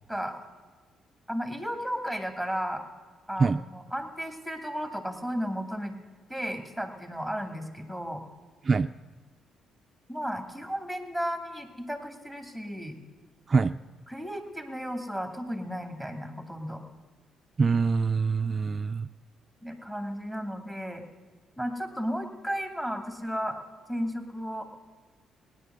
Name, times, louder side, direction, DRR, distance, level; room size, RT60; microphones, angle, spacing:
voice 1, 1.3-2.8 3.3-6.0 6.3-8.2 10.1-13.0 14.1-16.8 19.6-21.0 21.6-23.6 23.9-24.6, equal, 5° left, 6 dB, 2.3 m, -34 dB
voice 2, 17.6-19.1, right 4 dB, 35° right, 9 dB, 0.3 m, -24 dB
17.5 x 10.0 x 6.7 m, 1.5 s
cardioid pair, 90°, 0 cm